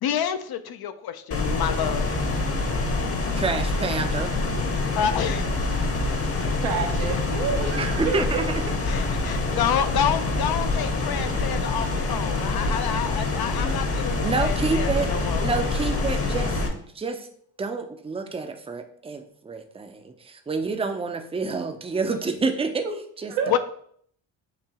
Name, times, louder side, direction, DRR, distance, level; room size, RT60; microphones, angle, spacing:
voice 1, 0.0-2.1 5.0-5.4 8.9-15.5 23.5-23.6, left 9 dB, 55° left, 10 dB, 0.5 m, -28 dB
sound 1, 1.3-16.7, left 3 dB, 30° left, 0.9 m, -26 dB
voice 2, 3.4-4.4 7.8-8.6 14.2-15.1 15.4-16.6 16.9-17.3 17.6-22.9 23.2-23.6, right 4 dB, 15° right, 6 dB, 0.5 m, -28 dB
voice 3, 6.6-8.2 22.8-22.9 23.3-23.6, right 5 dB, 80° right, 3 dB, 1.0 m, -28 dB
6.8 x 2.7 x 2.9 m, 0.63 s
supercardioid pair, 65°, 47 cm